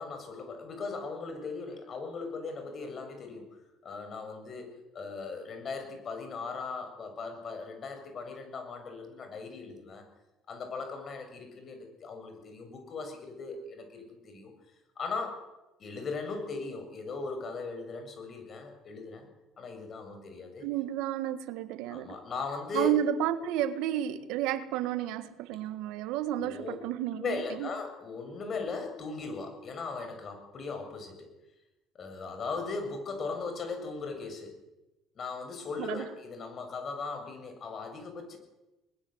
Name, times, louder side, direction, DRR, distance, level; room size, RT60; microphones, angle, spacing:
voice 1, 0.0-3.5 3.8-10.0 10.5-14.5 15.0-15.4 15.8-19.3 19.6-20.7 21.9-23.0 26.3-26.8 27.2-31.3 31.9-34.6 35.2-38.4, left 4 dB, 45° left, 6 dB, 7.3 m, -38 dB
voice 2, 20.6-22.1 22.7-27.7 35.8-36.0, right 11 dB, 80° right, 12 dB, 1.6 m, -31 dB
21.0 x 21.0 x 8.0 m, 1.0 s
supercardioid pair, 90°, 0 cm